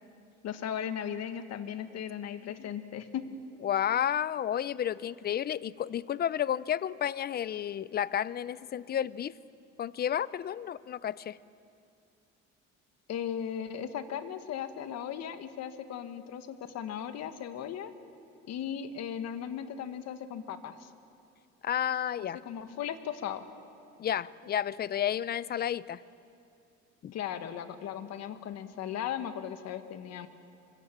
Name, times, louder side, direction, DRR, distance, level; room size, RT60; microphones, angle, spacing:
voice 1, 0.4-3.2 13.1-17.9 18.4-20.9 22.4-23.5 27.1-30.3, left 9 dB, 60° left, 9 dB, 1.5 m, -37 dB
voice 2, 3.6-9.3 9.8-11.4 21.6-22.4 24.0-26.0 27.0-27.1, left 10 dB, 35° left, 19 dB, 0.5 m, -31 dB
25.0 x 23.5 x 7.3 m, 2.6 s
cardioid pair, 120°, 30 cm